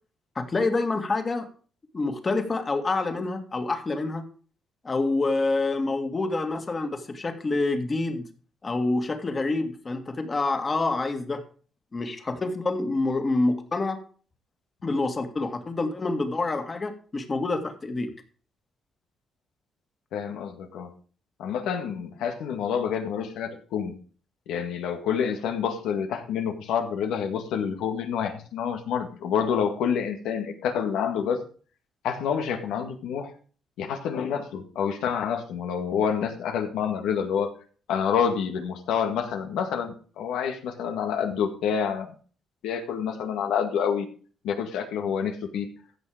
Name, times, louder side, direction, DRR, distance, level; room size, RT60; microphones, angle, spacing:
voice 1, 0.4-1.5 1.9-4.2 4.8-8.3 8.6-11.4 11.9-14.0 14.8-18.1, left 3 dB, 30° left, 7 dB, 2.1 m, -27 dB
voice 2, 20.1-20.9 21.4-24.0 24.5-31.4 32.0-33.3 33.8-37.5 37.9-42.1 42.6-44.1 44.4-45.7, left 7 dB, 90° left, 6 dB, 1.9 m, -28 dB
15.0 x 6.4 x 5.0 m, 0.41 s
cardioid pair, 90°, 0 cm